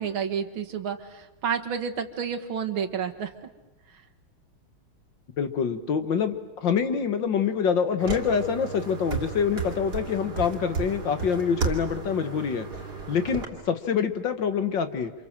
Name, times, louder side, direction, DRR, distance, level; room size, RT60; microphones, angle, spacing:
voice 1, 0.0-3.3, right 7 dB, 70° right, 5 dB, 2.3 m, -30 dB
voice 2, 5.4-12.7 13.1-15.1, left 7 dB, 60° left, 9 dB, 2.0 m, -26 dB
sound 1, 8.0-13.4, right 5 dB, 50° right, 3.8 m, -33 dB
29.0 x 27.0 x 7.5 m, 1.0 s
omnidirectional pair, 2.3 m